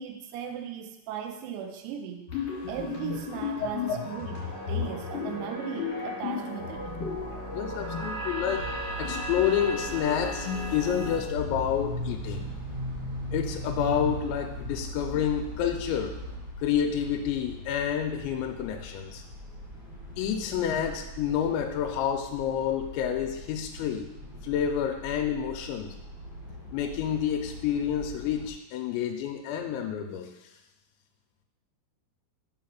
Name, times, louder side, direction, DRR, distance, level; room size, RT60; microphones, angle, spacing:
voice 1, 0.0-2.3 2.7-6.9 20.8-20.9, right 8 dB, 80° right, 5 dB, 2.8 m, -37 dB
sound 1, 2.3-11.2, left 4 dB, 40° left, 2.6 m, -34 dB
Engine, 6.7-16.4, right 3 dB, 65° right, 2.2 m, -42 dB
voice 2, 7.5-8.7 9.0-12.4 13.3-16.2 16.6-19.2 20.2-24.1 24.4-26.0 26.7-30.3, left 9 dB, 85° left, 3 dB, 2.9 m, -29 dB
sound 2, 8.6-28.5, equal, 40° right, 1.9 m, -40 dB
5.9 x 4.7 x 5.8 m, 0.97 s
omnidirectional pair, 5.2 m